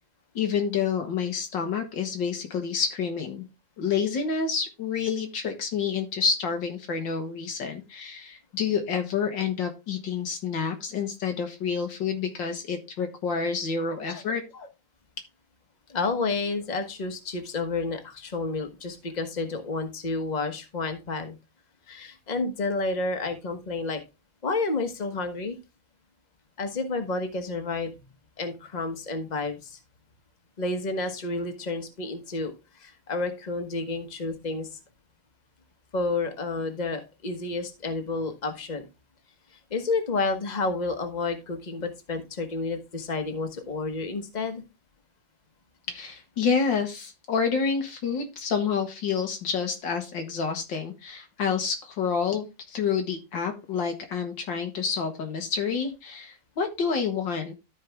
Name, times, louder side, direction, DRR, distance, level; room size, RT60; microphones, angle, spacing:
voice 1, 0.3-3.5 3.8-14.4 45.9-57.5, left 6 dB, 90° left, 5 dB, 2.4 m, -28 dB
voice 2, 15.9-21.4 21.9-24.0 24.4-25.6 26.6-28.0 28.4-29.8 30.6-34.7 35.9-38.9 39.7-44.6, left 3 dB, 25° left, 7 dB, 1.2 m, -30 dB
13.0 x 4.7 x 3.5 m, 0.25 s
omnidirectional pair, 2.0 m